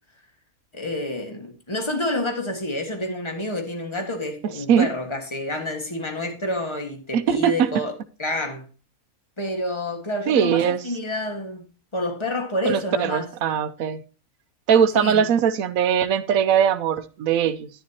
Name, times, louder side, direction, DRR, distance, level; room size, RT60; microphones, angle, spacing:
voice 1, 0.7-7.9 8.2-8.6 9.4-11.7 11.9-13.3 14.9-15.2, left 1 dB, 20° left, 1.7 m, -28 dB
voice 2, 7.1-7.7 10.3-10.8 12.6-14.0 14.7-17.7, right 8 dB, 75° right, 1.1 m, -20 dB
10.5 x 9.9 x 2.9 m
omnidirectional pair, 1.5 m